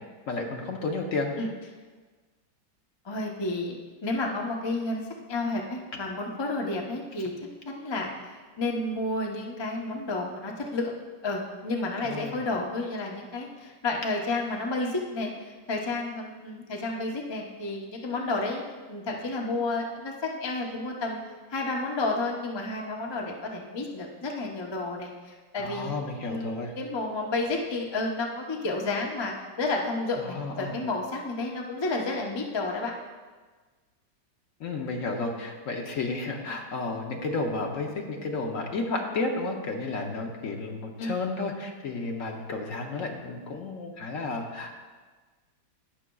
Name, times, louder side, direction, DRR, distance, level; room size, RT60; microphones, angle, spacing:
voice 1, 0.3-1.3 12.0-12.4 25.6-26.7 30.2-30.8 34.6-44.8, left 3 dB, 55° left, 1 dB, 1.0 m, -32 dB
voice 2, 3.0-3.7 4.0-7.3 7.6-10.9 11.2-18.6 18.9-21.2 21.5-25.9 26.2-32.9 41.0-41.2, left 2 dB, 35° left, 0 dB, 0.4 m, -31 dB
18.0 x 6.2 x 2.3 m, 1.4 s
omnidirectional pair, 2.0 m